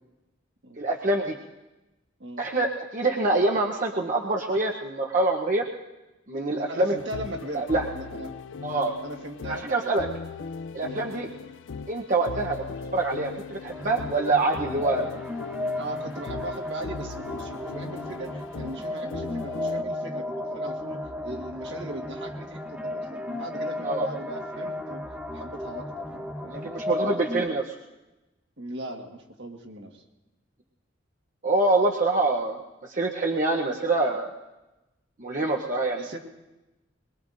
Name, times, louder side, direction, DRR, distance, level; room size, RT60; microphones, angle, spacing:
voice 1, 0.8-1.3 2.4-5.7 6.3-7.0 7.5-7.8 8.6-8.9 9.4-10.1 10.7-11.3 11.9-12.6 12.9-15.1 23.8-24.1 26.6-27.8 31.4-34.3 35.2-36.1, right 2 dB, 45° right, 0 dB, 0.9 m, -25 dB
voice 2, 6.5-7.7 7.9-8.3 8.7-9.9 10.8-11.4 15.8-25.0 25.3-26.7 28.6-30.0 35.9-36.2, right 1 dB, 65° right, 2 dB, 1.6 m, -39 dB
sound 1, 7.0-19.8, left 5 dB, 80° left, 0.5 m, -39 dB
sound 2, 13.7-27.5, left 1 dB, 10° right, 1.1 m, -34 dB
22.5 x 21.5 x 2.6 m, 1.1 s
head